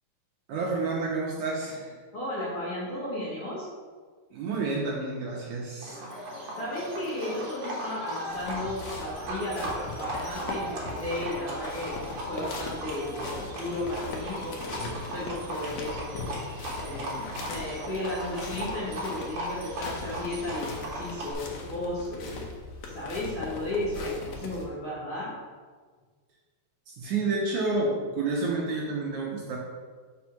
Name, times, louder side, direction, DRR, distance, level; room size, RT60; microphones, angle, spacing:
voice 1, 0.5-1.9 4.3-6.0 26.9-29.6, right 3 dB, 75° right, -3 dB, 1.8 m, -29 dB
voice 2, 2.1-3.7 6.6-16.1 16.7-22.5 22.9-25.3, left 1 dB, 55° left, -8 dB, 1.4 m, -34 dB
Livestock farm animals working animals, 5.8-21.3, right 1 dB, 55° right, 1.8 m, -37 dB
sound 1, 8.3-24.7, left 3 dB, 80° left, 1.5 m, -40 dB
5.3 x 4.8 x 5.9 m, 1.5 s
omnidirectional pair, 4.4 m